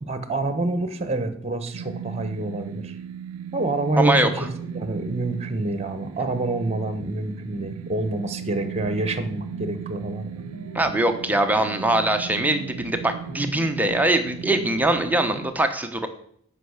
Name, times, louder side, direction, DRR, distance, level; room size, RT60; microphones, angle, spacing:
voice 1, 0.0-2.9 3.5-10.3, right 2 dB, 30° right, 10 dB, 1.2 m, -27 dB
sound 1, 1.7-15.5, right 8 dB, 90° right, 0.5 m, -37 dB
voice 2, 4.0-4.5 10.7-16.1, right 1 dB, 10° right, 6 dB, 1.0 m, -22 dB
sound 2, 7.5-15.5, right 1 dB, 60° left, 1.6 m, -44 dB
14.0 x 5.7 x 6.5 m, 0.68 s
head